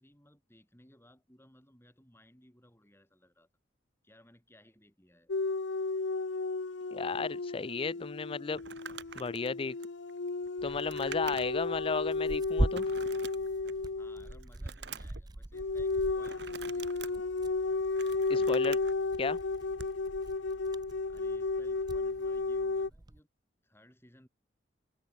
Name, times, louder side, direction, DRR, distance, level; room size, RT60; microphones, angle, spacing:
voice 1, 0.0-3.5 4.0-5.3 13.9-17.4 21.1-23.3 23.6-24.3, left 1 dB, 15° left, 8.0 m, -61 dB
sound 1, 5.3-14.4 15.5-22.9, left 3 dB, 90° left, 0.9 m, -33 dB
voice 2, 6.9-8.6 9.2-9.8 10.6-12.9 18.3-18.8 19.2-19.4, left 4 dB, 30° left, 0.4 m, -34 dB
Crumpling crinkling, 8.5-11.7 12.1-12.2 12.7-13.9 14.3-15.2 16.2-17.1 17.7-18.9 19.7-20.0, right 6 dB, 65° right, 2.1 m, -47 dB
Tearing, 10.6-23.2, right 1 dB, 20° right, 0.6 m, -41 dB
head